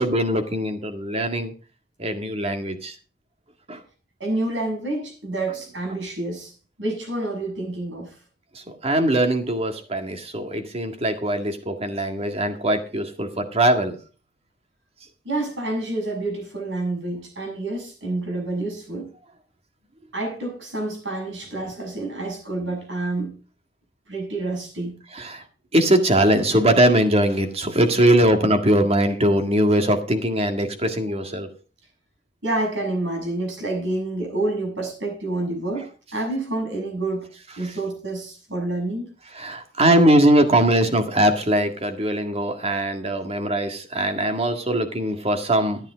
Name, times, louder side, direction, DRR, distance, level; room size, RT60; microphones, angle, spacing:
voice 1, 0.0-1.5 2.0-2.9 3.7-3.8 8.7-14.0 25.1-25.4 25.7-31.5 39.4-45.8, right 1 dB, 35° right, 6 dB, 1.8 m, -21 dB
voice 2, 4.2-6.5 6.8-8.1 15.3-19.1 20.1-23.4 24.1-25.0 32.4-37.3 37.6-39.1, right 2 dB, 75° right, 1 dB, 7.1 m, -28 dB
13.5 x 9.0 x 5.0 m, 0.37 s
head